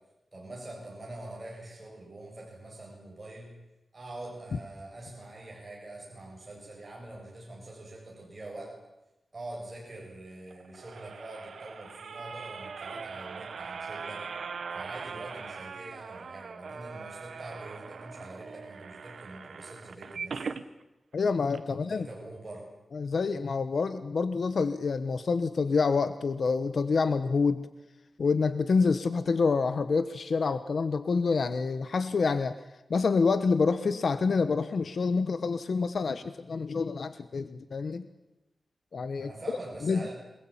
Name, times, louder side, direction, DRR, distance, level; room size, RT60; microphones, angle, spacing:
voice 1, 0.3-3.5 3.9-8.8 9.3-14.3 14.7-20.5 21.7-22.7 39.2-40.1, right 2 dB, 30° right, -2 dB, 7.5 m, -44 dB
sound 1, 10.5-20.6 21.1-21.2 21.5-21.6, right 5 dB, 75° right, 1.5 m, -41 dB
voice 2, 21.1-22.1 22.9-27.7 28.2-32.5 32.9-38.1 38.9-39.3 39.8-40.1, left 4 dB, 65° left, 12 dB, 1.2 m, -27 dB
28.0 x 20.5 x 8.8 m, 0.97 s
wide cardioid pair, 135°, 0 cm